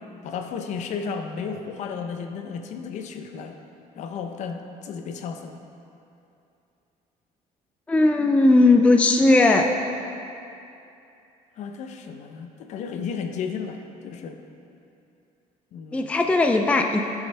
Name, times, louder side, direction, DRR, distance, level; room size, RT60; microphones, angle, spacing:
voice 1, 0.2-3.6 4.0-5.6 11.6-14.4 15.7-16.1, left 6 dB, 55° left, 5 dB, 0.7 m, -33 dB
voice 2, 7.9-9.7 15.9-17.0, left 2 dB, 10° left, 3 dB, 0.4 m, -17 dB
13.0 x 7.1 x 3.4 m, 2.7 s
cardioid pair, 140°, 14 cm